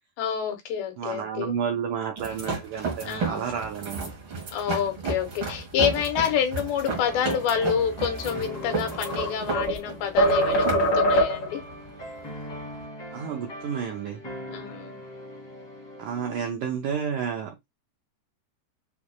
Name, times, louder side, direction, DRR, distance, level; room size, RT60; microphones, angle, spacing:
voice 1, 0.2-1.5 3.0-3.6 4.5-11.6 14.5-15.0, left 8 dB, 80° left, 2.8 m, -28 dB
voice 2, 1.0-4.1 13.1-14.2 16.0-17.7, right 7 dB, 85° right, 1.7 m, -31 dB
sound 1, 2.2-12.9, right 4 dB, 45° right, 1.7 m, -33 dB
sound 2, 6.8-16.5, left 1 dB, 45° left, 0.5 m, -41 dB
sound 3, 8.4-9.8 10.2-11.6, equal, 60° left, 1.0 m, -23 dB
6.1 x 3.5 x 2.3 m
omnidirectional pair, 4.4 m